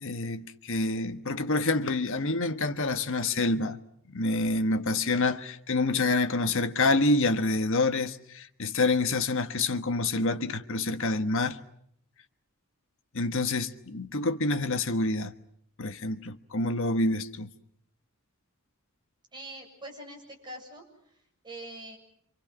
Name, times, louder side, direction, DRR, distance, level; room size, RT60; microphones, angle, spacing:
voice 1, 0.0-3.8 4.1-11.6 13.1-15.3 15.8-17.5, left 2 dB, 60° left, 1.4 m, -27 dB
voice 2, 19.3-20.8 21.4-22.0, right 1 dB, 20° right, 7.5 m, -43 dB
28.5 x 26.5 x 6.0 m
head